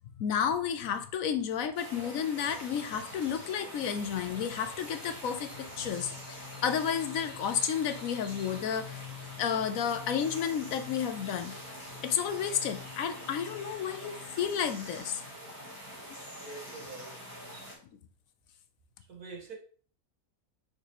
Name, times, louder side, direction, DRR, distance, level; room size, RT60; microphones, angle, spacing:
voice 1, 0.2-6.1 6.6-9.0 9.4-11.6 12.0-15.2, left 8 dB, 70° left, 1.0 m, -31 dB
sound 1, 1.7-17.7, equal, 15° right, 2.2 m, -45 dB
sound 2, 3.5-15.9, left 9 dB, 40° right, 1.7 m, -50 dB
voice 2, 16.3-17.3 19.0-19.5, right 3 dB, 80° right, 2.1 m, -45 dB
6.7 x 4.9 x 3.1 m
omnidirectional pair, 1.6 m